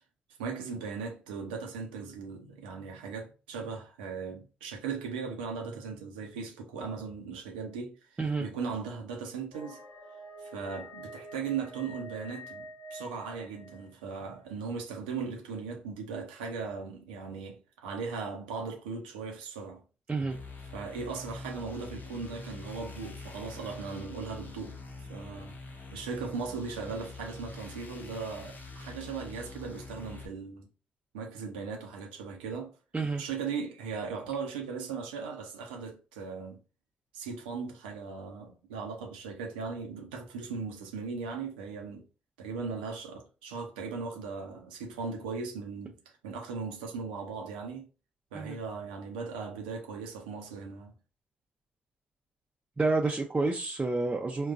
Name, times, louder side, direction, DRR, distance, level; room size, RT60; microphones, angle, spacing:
voice 1, 0.4-9.8 10.4-19.8 20.7-25.6 25.9-30.7 31.1-32.7 33.2-36.6 37.1-42.0 42.4-47.9 48.3-50.9, right 5 dB, 85° right, 0.6 m, -38 dB
sound 1, 9.5-14.2, equal, 60° left, 1.0 m, -47 dB
sound 2, 20.3-30.3, left 3 dB, 40° left, 0.7 m, -45 dB
voice 2, 52.8-54.5, right 3 dB, 25° right, 0.6 m, -29 dB
3.7 x 2.3 x 2.5 m
hypercardioid pair, 45°, 5 cm